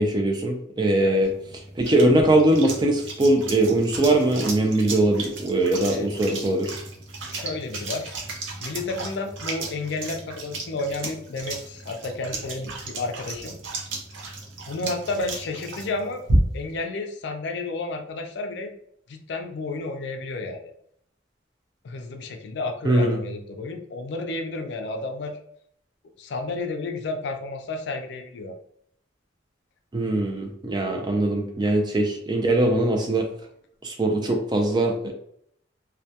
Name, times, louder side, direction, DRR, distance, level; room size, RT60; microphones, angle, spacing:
voice 1, 0.0-1.3 1.8-6.8 22.8-23.2 29.9-33.3 33.8-35.1, right 1 dB, 20° right, 2 dB, 0.3 m, -21 dB
sound 1, 1.2-16.8, right 2 dB, 80° right, 0.5 m, -33 dB
voice 2, 7.3-8.1 8.6-13.6 14.7-16.2 16.5-18.7 19.1-20.7 21.8-25.4 26.2-28.6, left 3 dB, 60° left, 5 dB, 0.4 m, -31 dB
2.2 x 2.2 x 2.7 m, 0.69 s
head